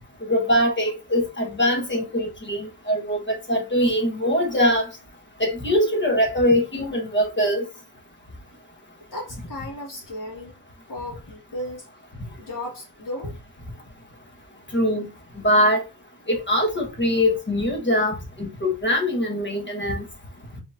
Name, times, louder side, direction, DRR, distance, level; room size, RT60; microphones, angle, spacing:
voice 1, 0.2-4.9 5.4-7.6 14.7-15.1 15.4-15.9 16.3-20.0, equal, 25° left, 1.3 m, -22 dB
voice 2, 9.1-10.5 10.9-11.9 12.4-13.3, left 1 dB, 45° left, 2.4 m, -35 dB
4.9 x 3.5 x 2.6 m
wide cardioid pair, 95°, 42 cm